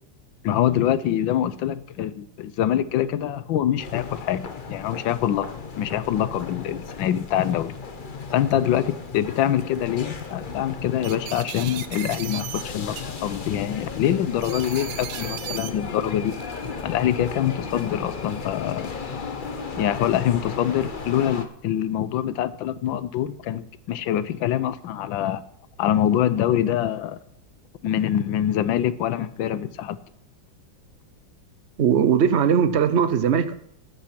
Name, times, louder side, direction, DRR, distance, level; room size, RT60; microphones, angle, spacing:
voice 1, 0.4-7.7 8.3-16.3 16.8-18.9 19.8-25.4 25.8-27.2 27.8-30.0, left 11 dB, 85° left, 14 dB, 1.5 m, -25 dB
sound 1, 3.8-21.5, left 4 dB, 35° left, 0.8 m, -35 dB
sound 2, 7.5-7.6 8.2-8.8 9.6-9.8 10.1-10.3 11.0-12.6 13.0-13.5 14.4-15.7 16.3-16.7, right 11 dB, 80° right, 1.5 m, -36 dB
voice 2, 31.8-33.6, right 7 dB, 50° right, 12 dB, 0.8 m, -19 dB
13.0 x 9.1 x 5.9 m, 0.72 s
omnidirectional pair, 2.1 m